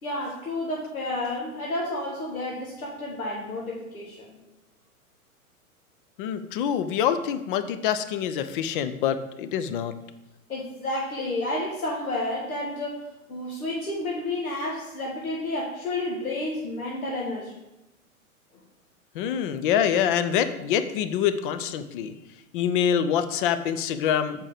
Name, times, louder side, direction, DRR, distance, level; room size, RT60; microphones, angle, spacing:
voice 1, 0.0-4.4 10.5-17.5, left 1 dB, 75° left, -3 dB, 1.6 m, -31 dB
voice 2, 6.2-9.9 19.1-22.1 22.5-24.4, left 8 dB, 40° left, 12 dB, 0.6 m, -25 dB
7.5 x 4.5 x 5.0 m, 0.93 s
figure-of-eight pair, 100°, 43 cm